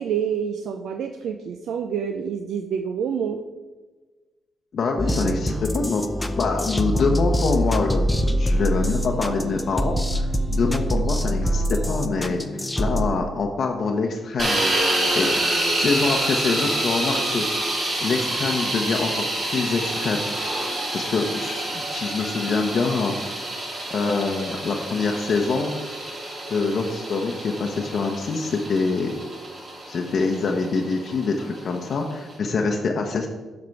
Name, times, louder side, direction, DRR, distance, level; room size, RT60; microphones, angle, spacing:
voice 1, 0.0-3.4, right 7 dB, 75° right, 6 dB, 0.4 m, -27 dB
voice 2, 4.7-6.0 6.4-15.3 15.7-17.4 18.0-20.2 20.6-23.2 23.9-25.7 26.5-29.1 29.9-33.3, left 4 dB, 60° left, 2 dB, 0.8 m, -25 dB
sound 1, 5.0-13.1, equal, 10° left, 0.6 m, -24 dB
sound 2, 14.4-32.3, right 1 dB, 50° right, 2.2 m, -27 dB
7.7 x 5.2 x 4.6 m, 1.3 s
supercardioid pair, 55°, 0 cm